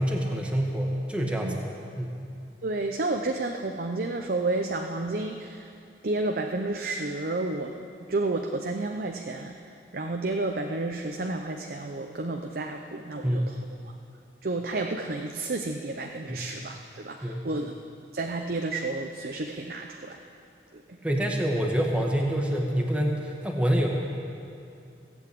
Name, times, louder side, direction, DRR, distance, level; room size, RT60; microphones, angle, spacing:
voice 1, 0.0-1.6 2.0-2.2 13.2-13.5 16.3-16.4 17.2-17.4 21.0-23.2 23.4-23.9, equal, 5° right, 0 dB, 1.5 m, -26 dB
voice 2, 2.6-5.7 6.0-7.7 8.1-9.6 9.9-13.6 14.4-17.8 18.1-20.2 20.7-20.8, right 2 dB, 55° right, 3 dB, 0.7 m, -31 dB
16.0 x 8.1 x 8.4 m, 2.5 s
head